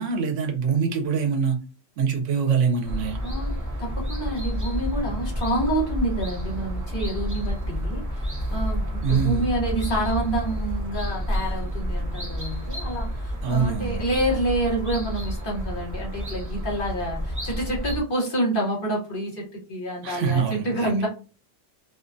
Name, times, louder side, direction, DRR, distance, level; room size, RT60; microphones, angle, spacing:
voice 1, 0.0-1.6 2.0-3.2 9.0-9.5 13.4-14.0 20.0-21.0, right 6 dB, 80° right, 1.0 m, -24 dB
sound 1, 2.8-18.0, equal, 20° right, 0.6 m, -29 dB
voice 2, 3.2-3.5 3.8-21.1, right 1 dB, 45° left, 1.1 m, -28 dB
2.5 x 2.2 x 2.5 m
omnidirectional pair, 1.3 m